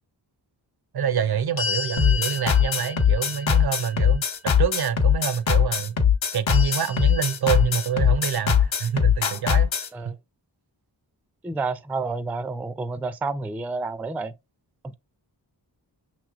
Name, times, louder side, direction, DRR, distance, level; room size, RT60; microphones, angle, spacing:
voice 1, 0.9-6.0 6.3-10.2, right 8 dB, 60° right, 0.5 m, -27 dB
sound 1, 1.6-4.7 6.5-8.2, left 6 dB, 55° left, 1.0 m, -35 dB
sound 2, 2.0-9.9, left 8 dB, 90° left, 0.9 m, -20 dB
voice 2, 11.4-14.3 14.8-14.9, right 3 dB, 5° right, 0.3 m, -30 dB
5.8 x 3.1 x 2.4 m
cardioid pair, 45°, 45 cm